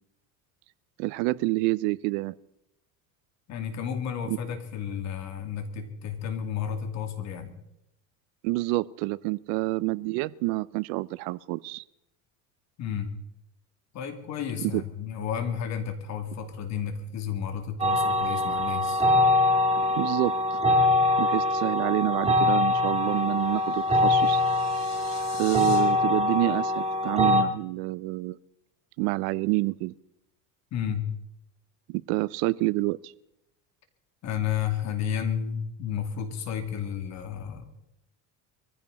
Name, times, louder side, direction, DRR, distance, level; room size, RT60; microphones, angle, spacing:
voice 1, 1.0-2.3 4.3-4.4 8.4-11.8 14.6-14.8 19.8-20.6 21.2-24.4 25.4-28.4 29.0-29.9 31.9-33.1, right 21 dB, 70° right, 18 dB, 0.7 m, -28 dB
voice 2, 3.5-7.5 12.8-13.1 13.9-19.0 30.7-31.1 34.2-37.7, left 8 dB, 50° left, 6 dB, 2.8 m, -32 dB
sound 1, 17.8-27.4, left 2 dB, 15° right, 2.1 m, -23 dB
sound 2, 23.1-25.8, left 7 dB, 65° left, 4.5 m, -45 dB
22.5 x 15.5 x 4.2 m, 0.84 s
supercardioid pair, 125°, 36 cm